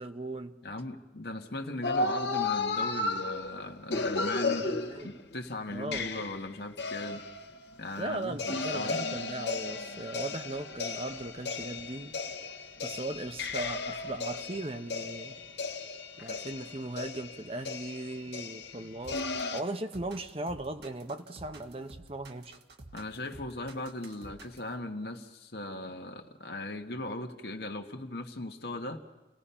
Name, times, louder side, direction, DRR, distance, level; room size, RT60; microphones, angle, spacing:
voice 1, 0.0-0.5 4.6-5.2 5.7-6.2 8.0-12.2 12.8-15.3 16.2-22.6, right 2 dB, 35° right, 7 dB, 0.9 m, -38 dB
voice 2, 0.6-4.8 5.0-7.2 7.8-9.0 22.9-29.0, left 2 dB, 65° left, 4 dB, 1.5 m, -38 dB
sound 1, 1.8-5.4 5.9-8.0 8.4-19.6, left 3 dB, 80° left, 1.4 m, -34 dB
sound 2, 19.0-24.7, right 2 dB, 70° right, 1.6 m, -50 dB
29.5 x 18.0 x 5.7 m, 1.1 s
head